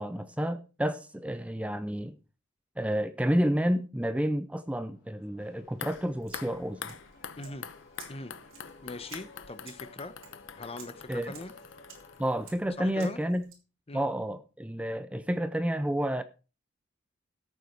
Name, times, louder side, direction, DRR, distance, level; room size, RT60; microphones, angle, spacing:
voice 1, 0.0-2.2 2.8-6.9 11.1-11.3 12.2-13.4 13.9-16.2, equal, 5° right, 0.6 m, -30 dB
sound 1, 4.8-12.2, left 2 dB, 55° left, 4.1 m, -55 dB
sound 2, 5.7-12.8 13.0-13.1, left 7 dB, 75° left, 0.8 m, -45 dB
sound 3, 6.2-13.5, right 5 dB, 85° right, 3.9 m, -54 dB
voice 2, 7.4-7.7 8.1-8.3 8.8-10.1 10.5-11.5 12.8-13.2 13.9-14.1, left 2 dB, 30° left, 0.9 m, -41 dB
13.5 x 8.4 x 4.6 m
head